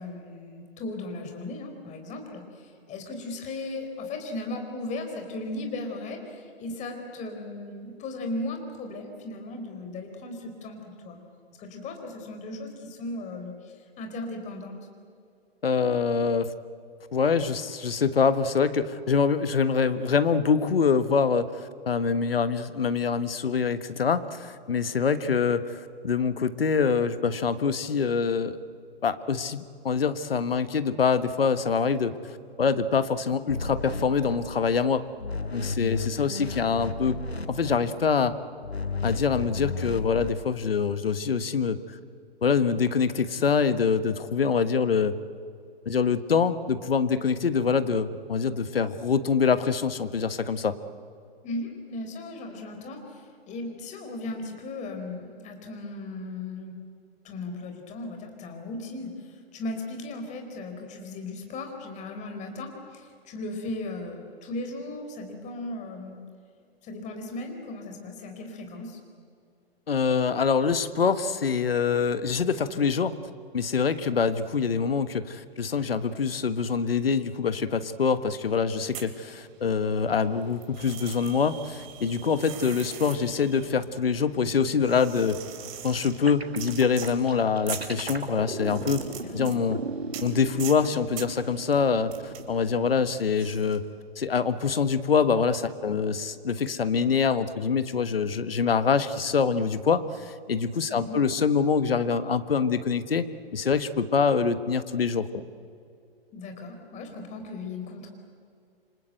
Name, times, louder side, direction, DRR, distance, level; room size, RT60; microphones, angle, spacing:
voice 1, 0.0-11.2 11.6-14.8 51.4-56.8 57.2-66.2 66.8-69.0 89.2-89.5 100.9-101.2 106.3-108.1, left 2 dB, 25° left, 4 dB, 4.6 m, -37 dB
voice 2, 15.6-16.5 17.1-28.6 29.0-35.0 35.5-37.2 37.5-38.3 39.0-41.8 42.4-45.2 45.8-50.8 69.9-73.2 73.5-85.4 85.8-89.0 89.3-89.8 90.2-93.8 94.2-103.2 103.5-105.4, left 5 dB, 70° left, 12 dB, 1.4 m, -25 dB
sound 1, 33.5-34.9 35.2-38.1 38.6-40.3, left 4 dB, 85° left, 1.3 m, -33 dB
sound 2, 78.8-79.9 80.2-93.8, right 8 dB, 35° right, 3.2 m, -42 dB
sound 3, 86.3-92.8, right 3 dB, 85° right, 1.8 m, -36 dB
28.0 x 25.5 x 8.1 m, 2.4 s
figure-of-eight pair, 115°, 31 cm